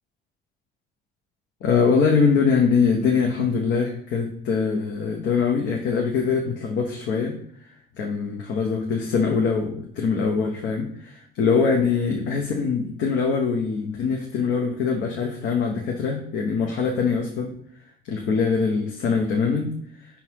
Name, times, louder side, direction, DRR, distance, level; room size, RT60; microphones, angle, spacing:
voice 1, 1.6-7.3 8.0-17.5 18.1-19.7, left 5 dB, 75° left, 1 dB, 1.0 m, -23 dB
5.6 x 4.0 x 4.6 m, 0.64 s
cardioid pair, 105°, 19 cm